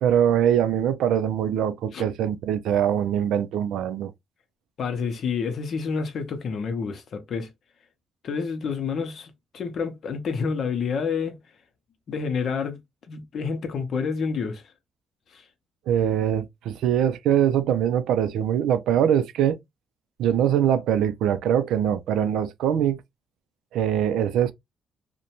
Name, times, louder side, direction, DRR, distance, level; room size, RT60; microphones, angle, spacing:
voice 1, 0.0-4.1 15.9-19.6 20.2-23.0 23.7-24.5, right 9 dB, 85° right, 0.3 m, -23 dB
voice 2, 4.8-7.5 8.2-11.4 12.1-12.8 13.1-14.6 15.3-15.5, left 5 dB, 60° left, 0.7 m, -29 dB
2.6 x 2.1 x 2.8 m
cardioid pair, 90°, 0 cm